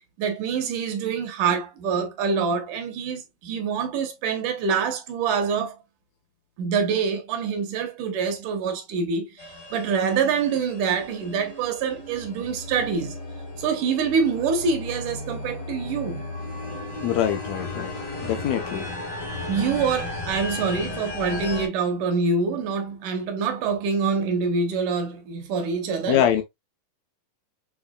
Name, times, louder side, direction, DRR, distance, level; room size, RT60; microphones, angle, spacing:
voice 1, 0.2-5.8 6.6-9.5 9.7-13.2 13.6-16.2 19.5-26.3, right 5 dB, 70° right, 2.2 m, -25 dB
sound 1, 9.4-21.7, left 2 dB, 55° left, 0.9 m, -35 dB
voice 2, 17.0-17.9 18.3-18.9 26.1-26.4, left 10 dB, 85° left, 1.5 m, -23 dB
7.1 x 3.4 x 2.2 m
omnidirectional pair, 4.0 m